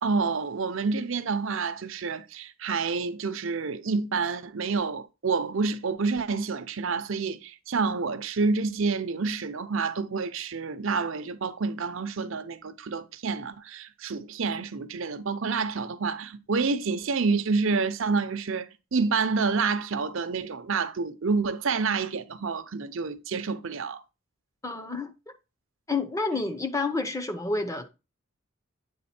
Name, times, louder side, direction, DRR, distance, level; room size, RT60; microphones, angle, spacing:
voice 1, 0.0-24.0, right 4 dB, 65° right, 0.6 m, -28 dB
voice 2, 24.6-25.1 25.9-27.9, left 3 dB, 15° left, 0.6 m, -29 dB
8.6 x 3.6 x 4.2 m
head